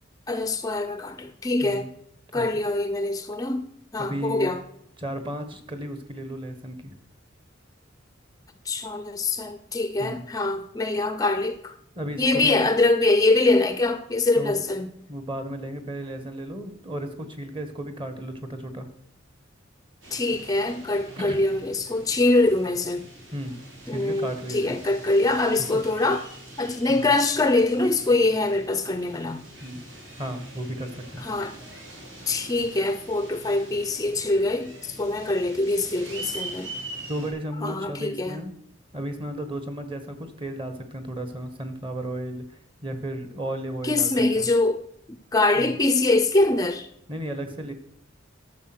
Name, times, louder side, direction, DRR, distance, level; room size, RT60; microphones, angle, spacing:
voice 1, 0.3-1.9 2.3-4.6 8.7-11.7 12.2-14.9 20.1-23.1 23.9-26.2 26.6-29.4 31.2-31.5 32.3-36.7 37.6-38.4 43.8-44.8 45.1-46.9, left 2 dB, 20° left, 0.5 m, -24 dB
voice 2, 4.0-4.5 5.0-6.9 10.0-10.3 11.9-12.7 14.3-14.6 15.1-18.9 21.1-21.4 23.3-23.6 23.8-24.7 25.6-25.8 26.9-27.2 29.6-29.8 30.2-31.3 37.1-38.5 38.9-44.5 45.6-45.8 47.1-47.7, right 1 dB, 25° right, 1.4 m, -34 dB
sound 1, 20.0-37.3, right 1 dB, 65° right, 3.6 m, -43 dB
12.0 x 6.9 x 6.0 m
head